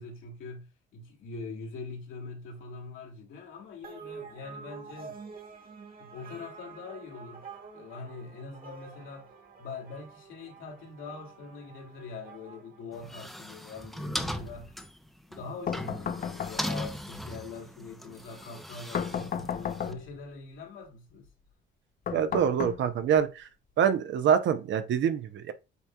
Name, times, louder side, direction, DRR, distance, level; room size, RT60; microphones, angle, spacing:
voice 1, 0.0-5.2 6.0-7.4 7.7-9.3 9.6-14.8 15.3-21.3, left 4 dB, 80° left, 2.0 m, -43 dB
sound 1, 3.8-13.6, right 5 dB, 45° right, 1.7 m, -48 dB
sound 2, 12.9-19.9, equal, ahead, 0.6 m, -38 dB
sound 3, 15.7-16.9 18.9-20.2 22.1-23.2, left 8 dB, 45° left, 0.6 m, -34 dB
voice 2, 22.1-23.5 23.8-25.5, right 8 dB, 70° right, 0.8 m, -25 dB
8.1 x 2.8 x 2.3 m
cardioid pair, 90°, 20 cm